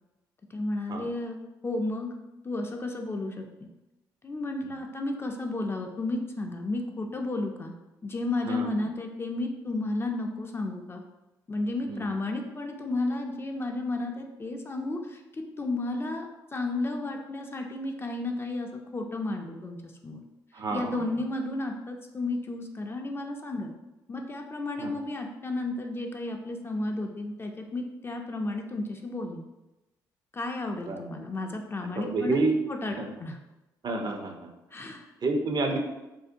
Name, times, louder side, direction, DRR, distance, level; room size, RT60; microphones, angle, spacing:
voice 1, 0.5-2.1 2.4-3.4 4.2-7.7 8.0-11.0 11.5-20.2 20.7-23.7 24.1-29.4 30.3-32.4 32.7-32.9 33.2-33.4 34.7-35.1, left 2 dB, 25° left, 3 dB, 0.4 m, -32 dB
voice 2, 8.4-8.9 11.9-12.1 20.5-21.0 24.8-24.9 30.9-31.0 32.0-32.6 33.0-33.1 33.8-34.5 35.2-35.8, right 3 dB, 40° right, 3 dB, 0.4 m, -29 dB
2.6 x 2.1 x 2.5 m, 1.0 s
hypercardioid pair, 50°, 10 cm